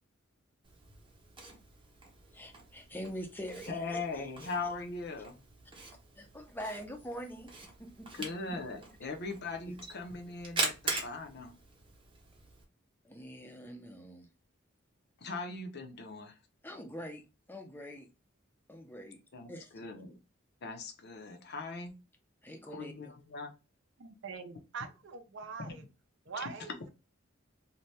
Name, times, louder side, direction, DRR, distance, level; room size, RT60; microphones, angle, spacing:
Camera, 0.6-12.6, right 3 dB, 25° right, 0.7 m, -42 dB
voice 1, 2.3-4.3 6.2-8.8 13.0-14.3 16.6-17.2 17.5-18.1 18.7-19.2 19.5-19.8 22.4-23.1, equal, 10° left, 0.5 m, -44 dB
voice 2, 3.7-5.4 8.2-11.5 15.2-16.4 19.3-20.1 20.6-21.9 22.7-23.5 26.4-26.5, left 3 dB, 55° left, 0.6 m, -40 dB
voice 3, 24.0-25.8 26.3-26.9, right 5 dB, 65° right, 0.5 m, -43 dB
2.7 x 2.1 x 3.2 m
head